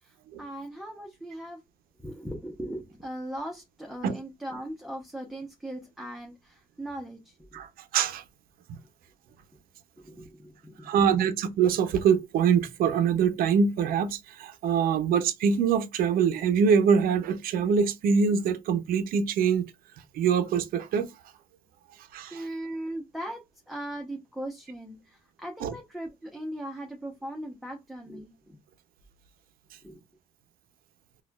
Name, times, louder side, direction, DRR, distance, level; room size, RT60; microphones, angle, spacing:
voice 1, 0.0-1.6 2.0-7.6 10.0-10.9 22.3-28.6 29.8-30.0, right 1 dB, ahead, 0.7 m, -39 dB
voice 2, 7.5-8.2 10.8-19.7 20.1-21.1 22.1-22.4 25.6-25.7, right 6 dB, 85° right, 0.5 m, -24 dB
4.2 x 2.3 x 2.2 m
cardioid pair, 110°, 15 cm